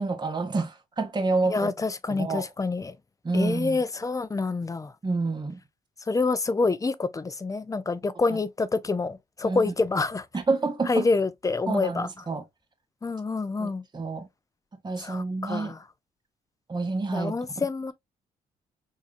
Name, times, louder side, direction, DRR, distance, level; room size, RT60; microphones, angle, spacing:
voice 1, 0.0-1.7 2.1-2.5 3.2-3.8 5.0-5.6 8.3-8.4 9.4-9.7 10.3-11.0 11.7-12.4 13.6-14.3 14.8-15.7 16.7-17.3, right 3 dB, 25° right, 0.9 m, -28 dB
voice 2, 1.5-3.0 3.3-4.9 6.1-10.3 10.9-12.1 13.0-13.8 15.0-15.8 17.1-17.9, left 3 dB, 20° left, 0.5 m, -27 dB
3.6 x 2.8 x 2.5 m
supercardioid pair, 60°, 17 cm